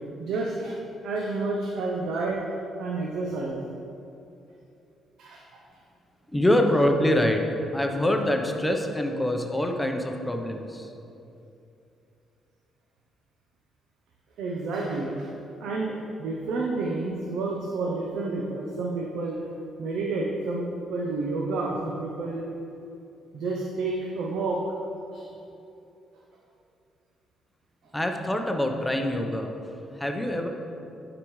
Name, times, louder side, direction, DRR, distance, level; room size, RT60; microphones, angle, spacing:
voice 1, 0.2-0.8 1.0-2.4 2.8-3.6 5.2-5.6 14.4-15.3 15.6-19.4 19.8-22.5 23.3-24.6 25.1-25.3, right 3 dB, 80° right, -2 dB, 0.7 m, -30 dB
voice 2, 6.3-7.4 7.7-10.9 27.9-29.6 29.9-30.5, left 1 dB, 10° left, 3 dB, 0.7 m, -25 dB
10.5 x 5.0 x 3.1 m, 2.7 s
cardioid pair, 90°, 0 cm